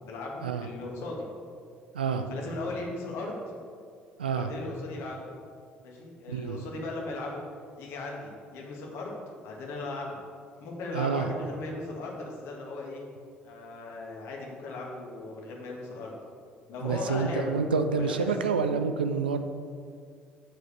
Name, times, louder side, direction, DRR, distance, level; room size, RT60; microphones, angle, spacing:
voice 1, 0.0-1.3 2.3-3.4 4.4-5.2 5.8-7.4 7.8-10.2 10.6-13.0 13.4-16.1 16.7-17.5 17.9-18.3, left 2 dB, 60° left, -1 dB, 1.8 m, -37 dB
voice 2, 1.9-2.4 4.2-4.5 6.3-6.7 10.9-11.3 16.8-19.4, right 5 dB, 80° right, 8 dB, 0.5 m, -28 dB
7.5 x 5.1 x 6.8 m, 2.1 s
figure-of-eight pair, 50°, 5 cm